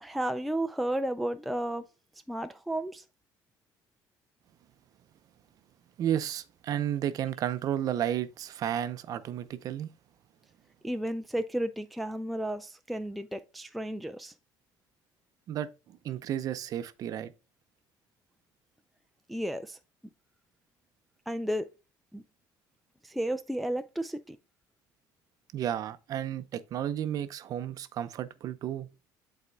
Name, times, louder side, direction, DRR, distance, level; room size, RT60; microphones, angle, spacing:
voice 1, 0.0-1.9 2.3-3.0 10.8-14.3 19.3-19.8 21.3-21.7 22.1-22.2 23.0-24.4, right 1 dB, ahead, 0.3 m, -33 dB
voice 2, 6.0-9.9 15.5-15.7 16.0-17.3 25.5-28.9, right 10 dB, 45° right, 0.6 m, -32 dB
11.0 x 4.2 x 2.2 m
cardioid pair, 145°, 8 cm